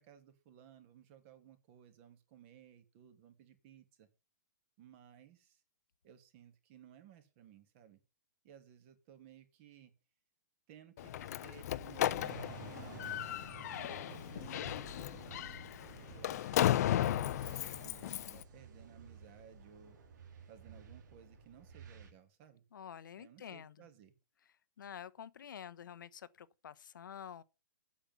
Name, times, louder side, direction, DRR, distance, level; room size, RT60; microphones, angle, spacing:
voice 1, 0.0-4.1 4.8-5.6 6.0-8.0 8.4-9.9 10.7-15.6 16.1-20.0 20.5-22.6 23.2-24.1, right 10 dB, 40° right, 2.6 m, -59 dB
Slam, 11.0-18.4, left 12 dB, 55° left, 0.7 m, -35 dB
sound 1, 12.2-22.1, right 5 dB, 65° right, 2.8 m, -53 dB
voice 2, 22.7-23.9 24.8-27.4, left 8 dB, 80° left, 0.9 m, -49 dB
8.6 x 7.7 x 7.0 m
hypercardioid pair, 145°, 10 cm